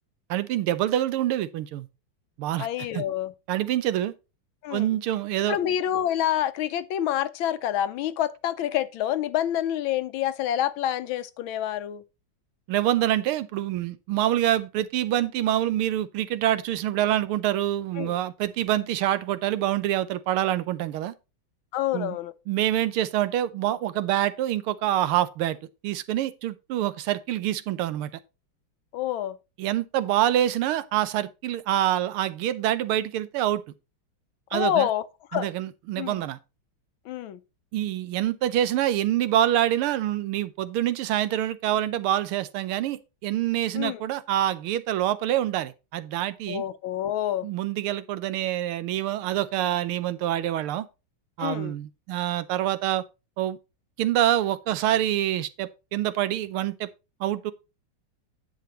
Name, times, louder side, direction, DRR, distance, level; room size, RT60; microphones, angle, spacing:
voice 1, 0.3-1.9 2.4-3.0 3.5-4.1 4.7-5.6 12.7-21.1 21.9-22.2 22.5-25.6 25.8-28.1 29.6-33.6 34.5-34.9 35.3-36.4 37.7-46.6 47.4-50.9 51.4-53.0 53.4-53.6 54.0-56.9 57.2-57.5, right 12 dB, 90° right, 1.6 m, -26 dB
voice 2, 2.6-3.3 4.6-4.9 5.5-12.0 18.0-18.1 21.7-22.3 28.9-29.4 34.5-35.1 35.3-35.5 36.0-36.2 37.1-37.4 43.7-44.0 46.5-47.5 51.4-51.7, left 11 dB, 75° left, 1.4 m, -27 dB
10.5 x 7.7 x 3.0 m
omnidirectional pair, 2.3 m